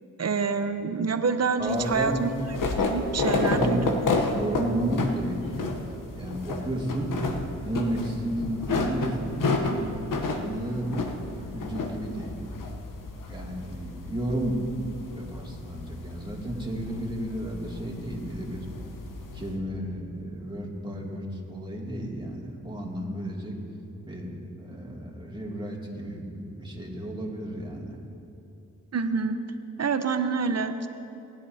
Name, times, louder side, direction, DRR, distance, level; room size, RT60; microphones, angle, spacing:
voice 1, 0.2-3.9 4.7-4.9 28.9-29.4 29.8-30.9, right 4 dB, 50° right, 9 dB, 0.9 m, -27 dB
voice 2, 1.6-2.2 3.2-3.8 4.3-5.7 6.1-7.1 7.6-9.8 10.2-10.9 11.3-12.4 13.3-14.7 15.1-18.7 19.3-23.6 24.0-28.0, right 1 dB, 15° right, -3 dB, 2.7 m, -32 dB
sound 1, 1.7-19.5, left 3 dB, 70° left, 1.1 m, -31 dB
19.0 x 10.5 x 2.9 m, 2.9 s
cardioid pair, 55°, 33 cm